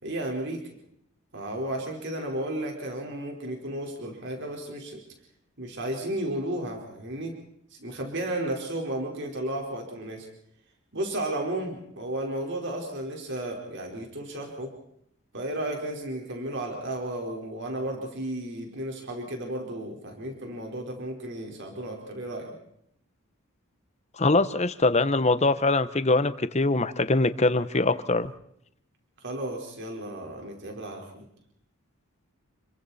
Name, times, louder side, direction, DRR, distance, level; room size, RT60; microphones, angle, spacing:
voice 1, 0.0-0.6 1.3-5.0 5.6-7.3 7.7-10.3 10.9-14.7 15.3-22.6 29.2-31.3, right 1 dB, 55° right, 1 dB, 4.5 m, -33 dB
voice 2, 24.2-28.3, left 2 dB, 30° left, 13 dB, 1.0 m, -23 dB
29.0 x 23.0 x 4.3 m, 0.74 s
head